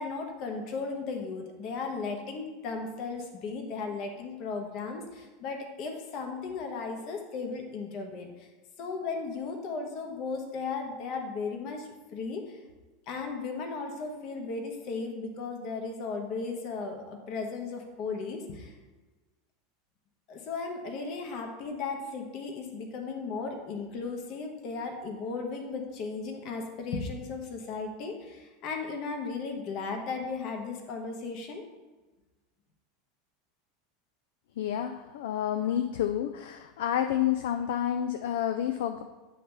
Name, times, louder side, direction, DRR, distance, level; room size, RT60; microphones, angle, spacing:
voice 1, 0.0-8.5 8.8-12.6 13.1-18.8 20.3-31.6, left 4 dB, 50° left, 3 dB, 1.2 m, -36 dB
voice 2, 34.6-39.0, left 10 dB, 65° left, 7 dB, 0.4 m, -29 dB
8.5 x 3.3 x 5.5 m, 1.2 s
figure-of-eight pair, 80°, 0 cm